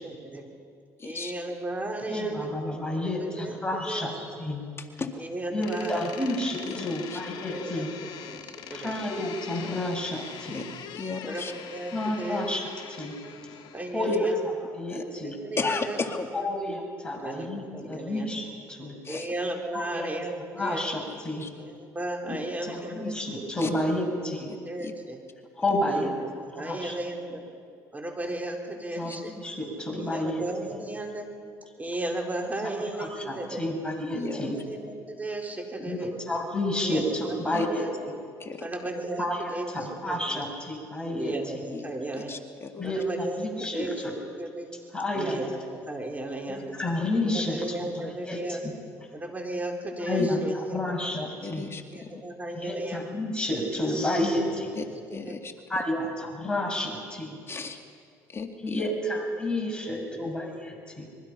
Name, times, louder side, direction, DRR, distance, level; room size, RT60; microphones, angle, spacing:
voice 1, 0.0-0.4 1.0-2.5 3.0-4.1 5.2-6.3 7.5-7.9 8.3-8.9 11.2-12.4 13.1-14.4 15.2-16.0 16.4-16.5 17.2-18.3 19.1-20.8 21.6-23.1 23.9-24.1 24.7-25.2 25.8-27.4 27.9-29.3 29.9-31.3 31.8-33.8 34.4-36.2 36.8-37.9 38.6-39.7 40.1-40.5 41.1-42.3 42.8-43.5 43.7-44.0 44.4-44.7 45.1-46.8 47.2-48.6 49.1-51.1 51.9-53.1 53.9-54.4 54.9-55.4 56.8-56.9 59.3-59.4 60.1-60.3, right 1 dB, 20° right, 1 dB, 4.4 m, -35 dB
voice 2, 1.0-1.3 5.0-5.1 6.7-7.2 10.5-10.6 10.9-11.5 14.1-14.2 14.9-15.0 15.6-16.3 17.9-18.0 19.0-19.3 20.7-20.8 21.1-21.5 23.6-23.7 24.8-24.9 29.0-29.2 34.1-34.5 37.5-37.7 38.4-38.7 41.7-41.8 42.3-42.9 50.2-50.3 51.4-52.1 54.7-54.9 55.1-55.5 57.5-57.8 58.3-58.9, left 4 dB, 30° left, 4 dB, 2.2 m, -34 dB
voice 3, 2.1-4.6 5.5-7.9 8.7-10.6 11.9-13.2 13.9-15.3 16.3-18.9 19.7-20.1 20.6-21.5 22.3-22.4 22.6-24.5 25.6-26.1 26.6-27.0 29.0-30.5 32.8-34.6 35.8-37.9 39.2-41.4 42.8-44.1 44.9-45.4 46.5-48.6 50.0-51.7 52.5-54.7 55.7-57.4 58.6-61.1, left 1 dB, 10° left, 0 dB, 7.3 m, -30 dB
Door, 5.6-14.1, left 8 dB, 65° left, 2.0 m, -43 dB
26.0 x 22.5 x 5.9 m, 2.3 s
supercardioid pair, 75°, 8 cm